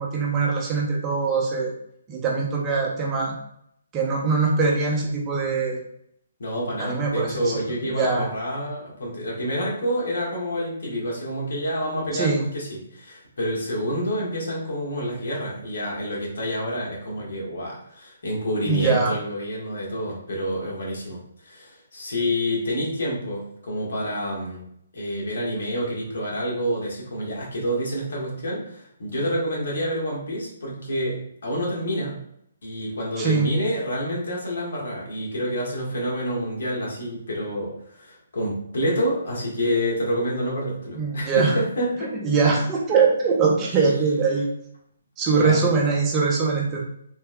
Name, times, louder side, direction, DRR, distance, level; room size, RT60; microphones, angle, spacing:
voice 1, 0.0-1.7 2.1-3.4 3.9-5.8 6.8-7.3 7.9-8.3 12.1-12.4 18.7-19.1 33.2-33.5 41.0-41.5 42.0-44.5 45.2-46.8, right 4 dB, 20° right, -2 dB, 0.6 m, -22 dB
voice 2, 6.4-24.6 24.9-32.2 32.6-42.1 45.3-45.6, equal, 70° left, -3 dB, 1.4 m, -28 dB
3.3 x 3.2 x 2.2 m, 0.70 s
hypercardioid pair, 150°, 0 cm